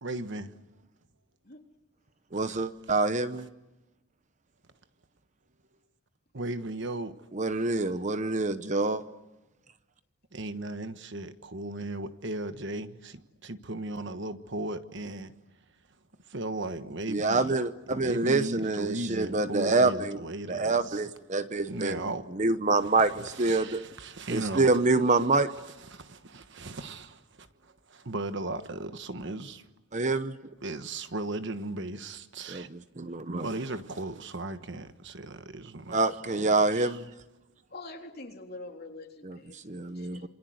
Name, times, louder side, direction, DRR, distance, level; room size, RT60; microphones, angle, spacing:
voice 1, 0.0-0.5 2.3-2.6 6.3-7.2 10.3-15.3 16.3-17.5 17.9-21.1 21.7-22.3 22.8-24.8 25.8-29.6 30.6-32.7 33.4-37.0, right 2 dB, 55° right, 1.3 m, -37 dB
voice 2, 2.3-3.5 7.3-9.0 17.1-20.2 20.5-22.0 22.3-23.8 24.3-25.5 29.9-30.4 32.5-33.5 35.9-37.1 39.2-40.3, right 3 dB, 35° right, 0.8 m, -26 dB
voice 3, 37.7-40.3, left 2 dB, 45° left, 3.7 m, -45 dB
27.5 x 25.0 x 8.0 m
head